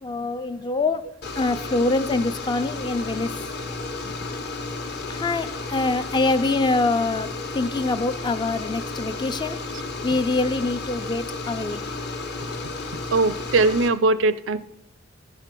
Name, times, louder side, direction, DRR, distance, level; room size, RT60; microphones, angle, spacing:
voice 1, 0.0-3.5 4.1-4.2 5.1-9.6 10.0-11.8, left 3 dB, 25° left, 0.3 m, -25 dB
sound 1, 1.2-13.9, left 3 dB, 55° left, 1.1 m, -32 dB
voice 2, 13.1-14.6, right 3 dB, 80° right, 0.5 m, -20 dB
14.5 x 4.9 x 5.9 m
head